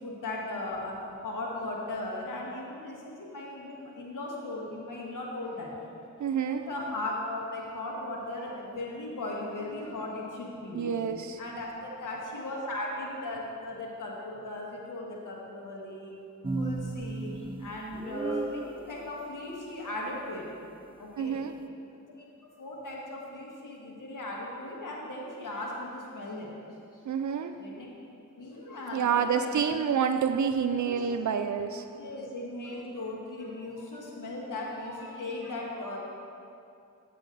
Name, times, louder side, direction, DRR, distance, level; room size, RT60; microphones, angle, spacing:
voice 1, 0.0-5.7 6.2-16.1 16.5-20.4 20.9-21.4 22.6-26.5 27.2-27.9 28.4-29.6 30.8-31.0 31.7-36.0, left 2 dB, 80° left, -3 dB, 1.6 m, -38 dB
voice 2, 6.2-6.6 10.7-11.4 21.2-21.5 27.1-27.5 28.9-31.9, right 7 dB, 65° right, 8 dB, 0.5 m, -28 dB
sound 1, 16.4-18.7, right 2 dB, 15° right, 0.5 m, -33 dB
8.8 x 7.5 x 3.9 m, 2.5 s
cardioid pair, 45°, 31 cm